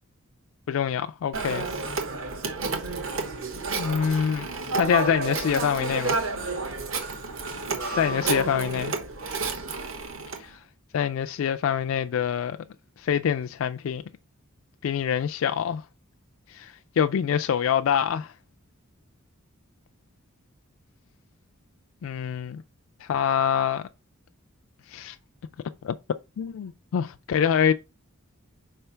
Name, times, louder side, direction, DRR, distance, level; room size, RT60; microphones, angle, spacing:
voice 1, 0.7-1.6 3.8-4.5 4.7-6.2 7.9-8.9 10.4-10.6 10.9-12.6 13.0-14.0 14.8-15.8 16.5-18.3 22.0-22.6 23.0-23.9 24.9-25.2 25.8-25.9 26.4-27.7, left 8 dB, 70° left, 0.3 m, -25 dB
Telephone, 1.3-10.4, right 3 dB, 65° right, 1.2 m, -30 dB
5.0 x 3.4 x 5.6 m
head